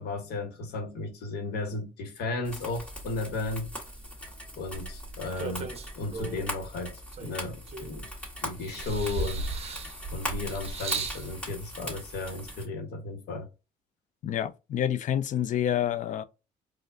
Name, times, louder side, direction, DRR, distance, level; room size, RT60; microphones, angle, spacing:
voice 1, 0.0-3.7 4.6-5.7 6.0-8.1 8.4-9.5 10.1-13.5, left 3 dB, 75° left, 1.2 m, -34 dB
sound 1, 2.4-12.7, equal, 10° left, 1.9 m, -40 dB
sound 2, 4.7-6.6 7.1-8.2 8.6-11.3 12.2-12.3, right 3 dB, 35° right, 0.7 m, -36 dB
voice 2, 14.2-16.2, left 10 dB, 50° left, 0.4 m, -28 dB
4.4 x 2.4 x 2.5 m
cardioid pair, 110°, 17 cm